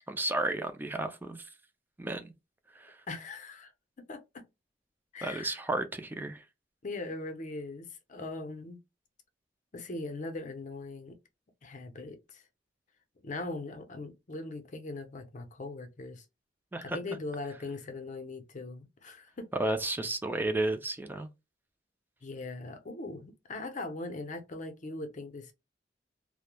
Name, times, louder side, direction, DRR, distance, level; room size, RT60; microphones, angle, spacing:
voice 1, 0.0-1.4 2.0-2.3 2.7-3.0 5.2-6.4 16.7-17.0 19.5-21.3, right 2 dB, 10° right, 0.4 m, -32 dB
voice 2, 3.1-3.7 4.1-4.4 5.1-5.6 6.8-8.8 9.7-11.2 11.6-12.4 13.2-16.2 16.8-19.5 22.2-25.5, left 2 dB, 45° left, 0.6 m, -40 dB
3.1 x 2.1 x 2.2 m
head